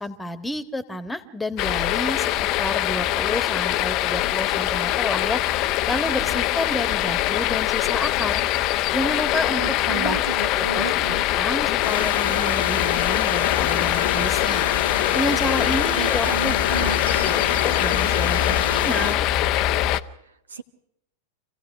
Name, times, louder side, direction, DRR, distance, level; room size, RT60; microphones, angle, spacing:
voice 1, 0.0-2.3 2.6-5.4 5.9-8.4 8.9-14.7 15.1-16.6 17.2-19.2, left 1 dB, 5° left, 12 dB, 1.6 m, -30 dB
sound 1, 1.6-20.0, left 14 dB, 40° left, 0.8 m, -23 dB
voice 2, 9.5-11.4 15.9-17.3 20.5-20.6, right 5 dB, 70° right, 10 dB, 1.2 m, -33 dB
sound 2, 11.8-19.1, left 6 dB, 70° left, 1.2 m, -29 dB
27.5 x 16.0 x 5.9 m, 0.79 s
figure-of-eight pair, 90°, 0 cm